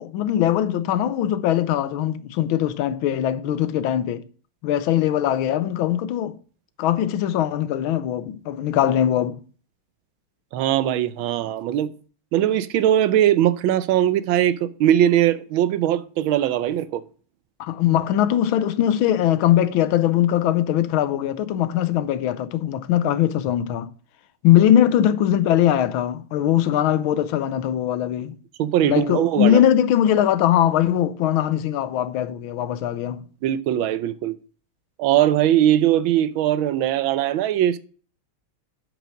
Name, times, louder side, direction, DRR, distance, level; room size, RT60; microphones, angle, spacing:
voice 1, 0.0-4.2 4.6-6.4 6.8-9.4 17.6-23.9 24.4-28.4 28.8-33.3, left 11 dB, 85° left, 1.5 m, -21 dB
voice 2, 10.5-11.9 12.3-17.0 28.6-29.6 33.4-34.4 35.0-37.8, right 11 dB, 80° right, 1.4 m, -20 dB
9.0 x 5.1 x 5.9 m
omnidirectional pair, 2.2 m